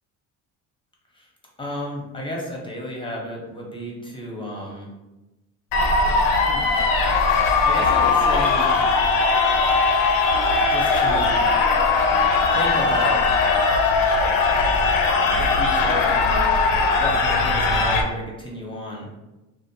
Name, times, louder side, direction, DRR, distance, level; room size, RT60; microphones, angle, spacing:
voice 1, 1.6-4.9 6.5-6.7 7.6-8.7 10.7-11.5 12.5-13.2 15.4-16.5 17.0-19.1, left 1 dB, 15° left, -2 dB, 0.7 m, -32 dB
sound 1, 5.7-18.0, left 4 dB, 75° left, 0.5 m, -19 dB
2.5 x 2.1 x 2.7 m, 1.0 s
cardioid pair, 95°, 34 cm